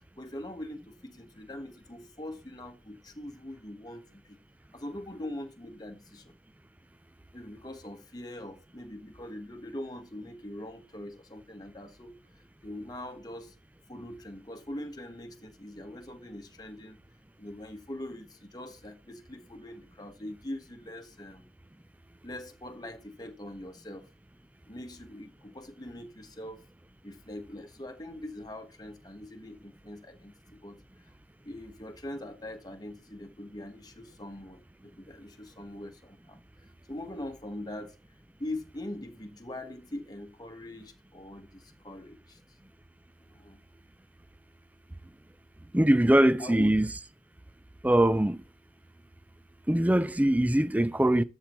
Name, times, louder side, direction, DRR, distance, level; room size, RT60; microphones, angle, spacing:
voice 1, 0.2-4.4 4.7-6.3 7.3-12.1 12.6-13.5 13.9-17.0 17.4-21.5 22.2-24.1 24.7-26.6 27.0-30.8 31.4-36.4 36.9-38.0 38.4-42.4 43.2-43.6 46.4-46.7, left 1 dB, 20° left, 1.4 m, -42 dB
voice 2, 45.7-46.9 47.8-48.4 49.7-51.2, right 1 dB, 10° right, 0.4 m, -22 dB
13.0 x 8.2 x 3.1 m
head